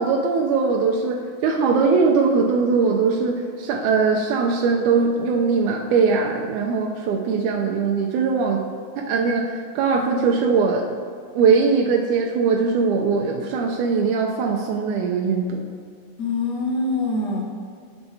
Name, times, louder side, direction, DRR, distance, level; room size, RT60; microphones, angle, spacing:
voice 1, 0.0-8.7 9.0-10.9 11.3-15.6, right 5 dB, 85° right, 0 dB, 2.0 m, -21 dB
voice 2, 16.2-17.4, left 2 dB, 50° left, -3 dB, 1.4 m, -24 dB
10.5 x 6.9 x 2.7 m, 2.2 s
omnidirectional pair, 3.5 m